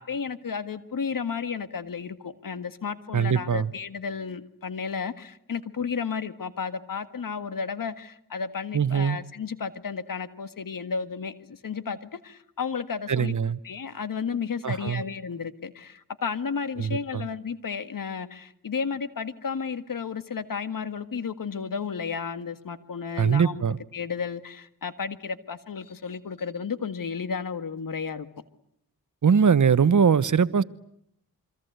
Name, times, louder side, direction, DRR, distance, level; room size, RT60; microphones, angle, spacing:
voice 1, 0.0-13.3 13.6-23.6 23.9-28.3, left 6 dB, 65° left, 12 dB, 1.8 m, -33 dB
voice 2, 3.1-3.7 8.7-9.2 13.1-13.6 14.6-15.0 16.8-17.2 23.2-23.8 29.2-30.6, right 6 dB, 55° right, 16 dB, 1.1 m, -22 dB
27.0 x 25.0 x 8.1 m, 0.73 s
cardioid pair, 60°, 36 cm